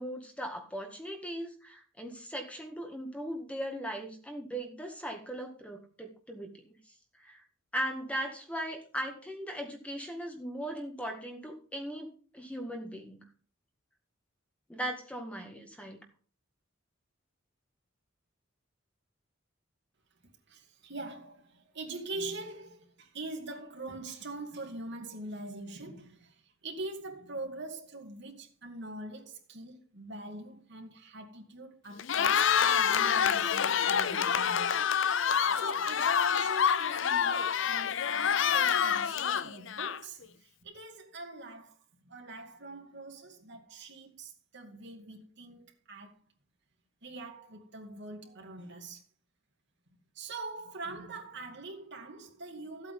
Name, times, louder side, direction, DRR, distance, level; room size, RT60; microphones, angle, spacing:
voice 1, 0.0-6.8 7.2-7.4 7.7-13.2 14.7-16.0, right 1 dB, 5° left, 1.8 m, -38 dB
voice 2, 20.5-35.2 35.5-41.8 42.0-46.1 47.0-49.0 50.1-52.9, right 2 dB, 60° right, 2.3 m, -43 dB
Cheering, 32.0-40.2, left 7 dB, 70° left, 0.6 m, -27 dB
14.5 x 8.5 x 3.8 m
head